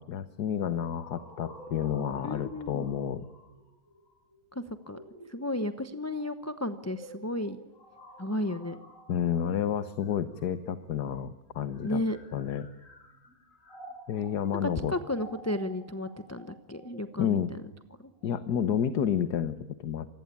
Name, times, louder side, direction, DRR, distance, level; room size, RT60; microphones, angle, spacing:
voice 1, 0.0-3.2 9.1-12.0 12.3-12.7 14.1-14.9 17.2-17.5 18.2-20.1, left 9 dB, 70° left, 12 dB, 1.7 m, -30 dB
sound 1, 1.0-10.8 11.6-18.5, right 1 dB, 50° left, 6.2 m, -51 dB
voice 2, 2.2-2.9 4.6-5.0 5.3-7.6 8.2-8.8 11.8-12.2 14.6-17.4, left 1 dB, 10° left, 10 dB, 0.8 m, -33 dB
27.0 x 20.5 x 8.6 m, 0.99 s
omnidirectional pair, 1.8 m